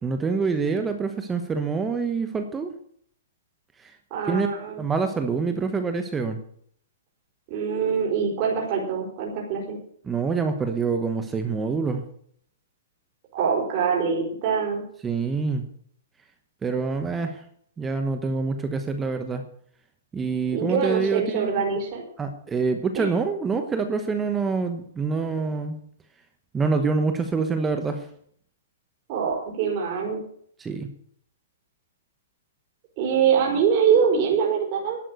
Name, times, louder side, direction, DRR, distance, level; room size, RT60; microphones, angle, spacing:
voice 1, 0.0-2.7 3.8-3.9 4.3-4.5 4.8-6.4 10.1-12.0 15.0-15.6 16.6-17.4 17.8-19.5 20.1-21.6 22.2-25.8 26.5-28.1 30.6-30.9, right 4 dB, 10° right, 7 dB, 1.1 m, -26 dB
voice 2, 4.1-4.8 7.5-9.8 13.3-14.8 20.5-22.0 22.9-23.1 29.1-30.2 33.0-35.0, right 6 dB, 35° right, -2 dB, 4.5 m, -24 dB
11.5 x 9.1 x 8.0 m, 0.63 s
hypercardioid pair, 160°, 0 cm